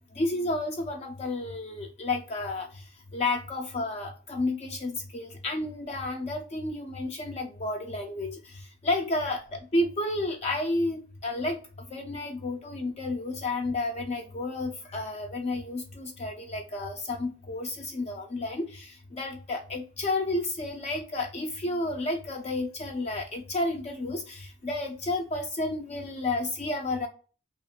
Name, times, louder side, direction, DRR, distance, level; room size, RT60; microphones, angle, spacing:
voice 1, 0.2-2.7 3.1-8.4 8.8-11.6 11.9-27.1, left 2 dB, 35° left, 3 dB, 0.4 m, -31 dB
2.4 x 2.3 x 2.7 m, 0.36 s
head